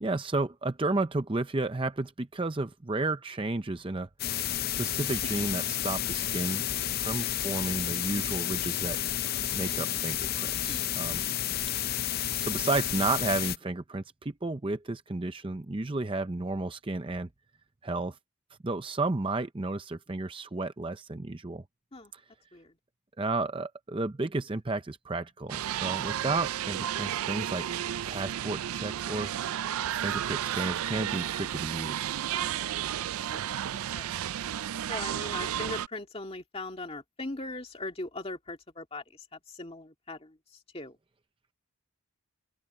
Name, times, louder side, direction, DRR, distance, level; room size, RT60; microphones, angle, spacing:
voice 1, 0.0-4.1 4.8-6.7 7.0-9.0 9.5-11.2 12.4-17.3 17.8-18.2 18.6-21.6 23.2-27.6 28.1-29.3 30.0-32.1, right 2 dB, 25° right, 0.6 m, -32 dB
sound 1, 4.2-13.6, left 11 dB, 45° left, 0.5 m, -31 dB
sound 2, 25.5-35.9, right 10 dB, 80° right, 0.4 m, -32 dB
voice 2, 32.3-32.7 32.9-33.0 33.3-34.1 34.9-41.0, left 2 dB, 25° left, 2.2 m, -40 dB
open air
head